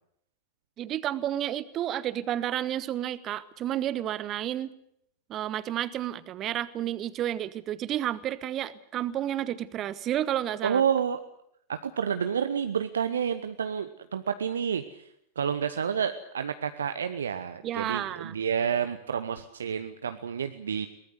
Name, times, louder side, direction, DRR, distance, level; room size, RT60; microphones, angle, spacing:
voice 1, 0.8-4.7 5.3-10.8 17.6-18.4, right 12 dB, 30° right, 17 dB, 1.2 m, -31 dB
voice 2, 10.6-11.2 11.7-15.1 15.4-20.9, right 7 dB, 70° right, 9 dB, 1.0 m, -29 dB
22.5 x 19.5 x 8.1 m, 0.72 s
figure-of-eight pair, 90°, 0 cm